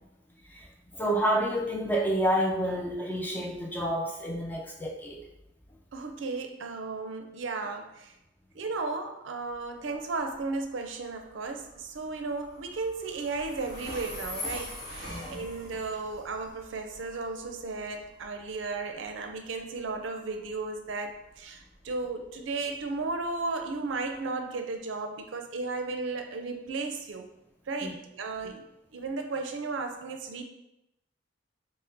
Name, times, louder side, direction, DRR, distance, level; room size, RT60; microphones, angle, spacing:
voice 1, 0.4-5.3 15.1-15.4 27.8-28.0 28.4-28.5, right 1 dB, 10° left, 0 dB, 0.3 m, -29 dB
voice 2, 5.9-8.1 8.5-27.3 27.7-28.6 28.9-30.4, right 3 dB, 70° right, 5 dB, 0.4 m, -35 dB
Train, 9.4-24.2, left 1 dB, 50° left, 1.2 m, -45 dB
5.6 x 2.0 x 2.6 m, 0.87 s
head